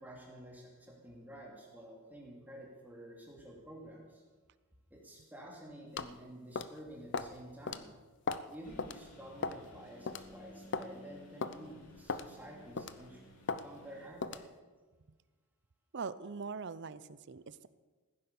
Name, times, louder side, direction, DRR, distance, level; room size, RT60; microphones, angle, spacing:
voice 1, 0.0-4.2 4.9-7.9 8.5-13.2 13.6-14.5, right 1 dB, 10° right, -2 dB, 2.7 m, -51 dB
sound 1, 6.0-6.2 6.6-6.8 7.1-7.3 7.7-7.8 8.3-8.5 8.8-9.0 9.4-9.7 10.1-10.2 10.7-10.9 11.4-11.6 12.1-12.3 12.8-13.0 13.5-13.6 14.2-14.5, left 4 dB, 55° left, 0.6 m, -36 dB
Engine, 8.6-14.1, left 1 dB, 85° left, 3.1 m, -56 dB
voice 2, 15.9-17.7, right 5 dB, 50° right, 15 dB, 0.6 m, -42 dB
15.5 x 10.0 x 7.0 m, 1.4 s
head